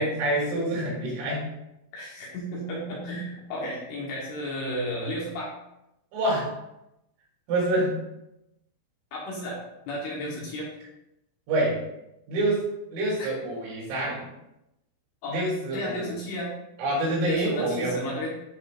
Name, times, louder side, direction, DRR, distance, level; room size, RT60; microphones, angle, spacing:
voice 1, 0.0-1.5 6.1-6.5 7.5-8.0 11.5-11.8 12.3-14.3 15.3-16.1 16.8-18.0, right 1 dB, 85° right, -5 dB, 5.8 m, -27 dB
voice 2, 1.9-5.5 9.1-10.7 13.0-13.3 15.2-15.4 15.7-16.5 17.3-18.3, equal, 65° left, -4 dB, 3.0 m, -33 dB
12.0 x 4.8 x 2.6 m, 0.88 s
omnidirectional pair, 5.9 m